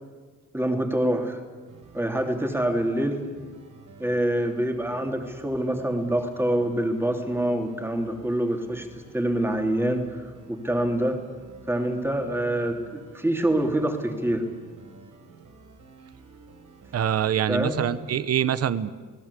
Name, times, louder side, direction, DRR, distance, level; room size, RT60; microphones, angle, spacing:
voice 1, 0.5-1.4 1.9-3.2 4.0-11.2 11.7-14.5 17.5-17.8, right 1 dB, 5° right, 4 dB, 3.0 m, -26 dB
sound 1, 1.7-18.2, right 4 dB, 70° right, 5.4 m, -50 dB
voice 2, 16.9-18.9, right 9 dB, 50° right, 15 dB, 1.0 m, -25 dB
30.0 x 19.0 x 8.4 m, 1.5 s
cardioid pair, 145°, 33 cm